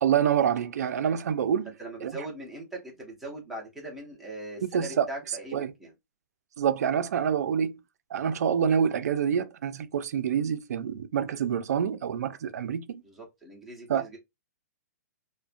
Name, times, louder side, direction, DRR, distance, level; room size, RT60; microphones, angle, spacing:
voice 1, 0.0-1.7 2.0-2.2 4.6-5.1 5.5-5.7 6.6-7.7 8.1-13.0 13.9-14.0, right 8 dB, 65° right, 0.4 m, -26 dB
voice 2, 1.6-5.9 13.0-14.2, right 2 dB, ahead, 0.5 m, -40 dB
2.4 x 2.1 x 2.4 m
hypercardioid pair, 175°, 9 cm